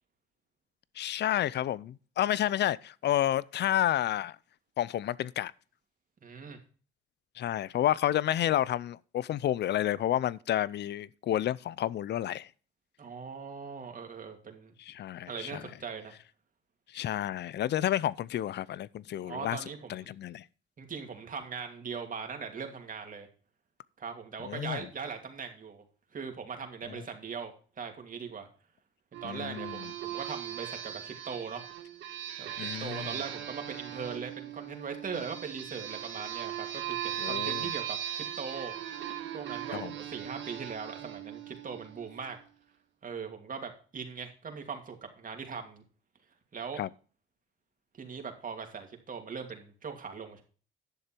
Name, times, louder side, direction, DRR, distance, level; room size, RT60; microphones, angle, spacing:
voice 1, 1.0-4.4 4.8-5.5 7.4-12.5 14.8-15.7 16.9-19.6 19.9-20.4 24.4-24.9 29.2-29.9 32.6-33.2 37.2-37.7 39.7-39.9 46.8-46.9, left 12 dB, 60° left, 0.5 m, -30 dB
voice 2, 6.2-6.6 13.0-14.7 15.3-16.1 19.2-20.2 20.8-23.3 24.0-25.8 26.1-27.5 27.8-28.5 29.1-31.6 32.4-38.7 39.3-42.4 43.0-45.8 46.5-46.8 48.0-50.4, right 6 dB, 45° right, 2.6 m, -40 dB
sound 1, 29.1-42.3, right 11 dB, 75° right, 1.6 m, -39 dB
11.0 x 6.8 x 4.4 m
cardioid pair, 90°, 20 cm